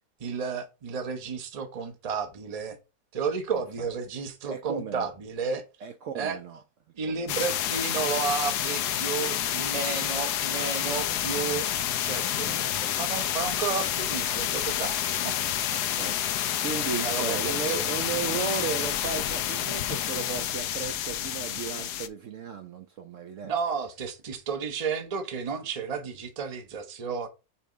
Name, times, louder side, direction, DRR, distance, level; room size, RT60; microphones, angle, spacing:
voice 1, 0.2-2.8 3.1-5.6 6.1-6.4 7.0-11.7 12.0-15.5 16.4-16.6 16.9-17.9 23.4-27.3, right 5 dB, 30° right, 0.7 m, -32 dB
voice 2, 4.5-5.1 5.8-6.6 7.1-7.4 11.1-11.2 12.5-12.6 15.9-23.5, right 6 dB, 65° right, 0.9 m, -35 dB
sound 1, 7.3-22.1, left 11 dB, 85° left, 1.2 m, -29 dB
5.6 x 3.4 x 5.0 m
omnidirectional pair, 1.7 m